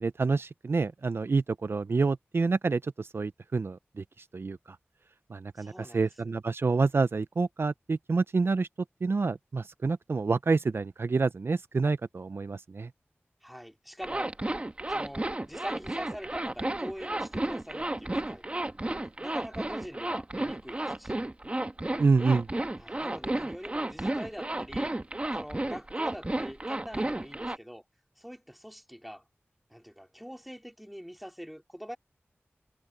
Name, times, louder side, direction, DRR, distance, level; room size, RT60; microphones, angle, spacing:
voice 1, 0.0-4.8 5.3-8.7 9.0-12.9 22.0-22.5, right 4 dB, 60° right, 0.4 m, -28 dB
voice 2, 5.6-6.3 13.4-14.3 14.9-18.6 19.2-21.3 22.8-25.0 25.3-27.8 28.2-29.3 29.7-32.0, equal, ahead, 3.1 m, -44 dB
Zipper (clothing), 14.0-27.6, right 1 dB, 25° right, 1.2 m, -32 dB
wide cardioid pair, 65°, 4 cm